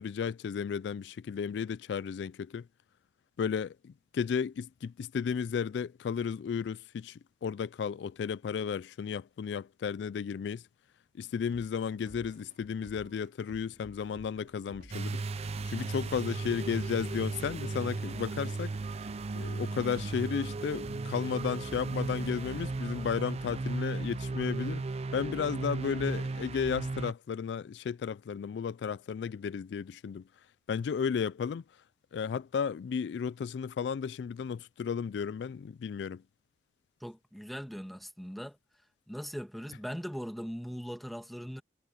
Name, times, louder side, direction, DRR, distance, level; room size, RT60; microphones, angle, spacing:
voice 1, 0.0-2.7 3.4-10.6 11.2-18.7 19.3-24.8 25.1-30.2 30.7-31.6 32.1-36.2, left 6 dB, 70° left, 0.3 m, -34 dB
sound 1, 11.4-27.0, right 1 dB, 75° right, 3.3 m, -55 dB
sound 2, 14.9-27.1, right 3 dB, 35° right, 0.4 m, -35 dB
voice 2, 37.0-38.6 39.1-41.6, equal, ahead, 1.4 m, -40 dB
head